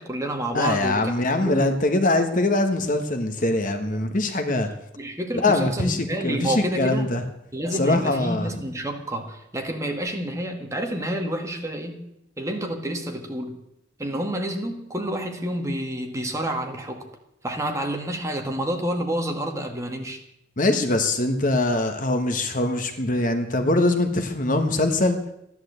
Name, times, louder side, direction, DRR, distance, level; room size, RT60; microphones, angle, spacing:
voice 1, 0.0-1.8 5.0-7.2 7.5-12.0 12.4-13.6 14.0-17.1 17.4-20.2, right 1 dB, 15° right, 3 dB, 1.8 m, -29 dB
voice 2, 0.5-4.7 5.4-7.2 7.8-8.5 20.6-25.2, left 2 dB, 40° left, 7 dB, 1.4 m, -22 dB
14.0 x 11.0 x 8.1 m, 0.82 s
head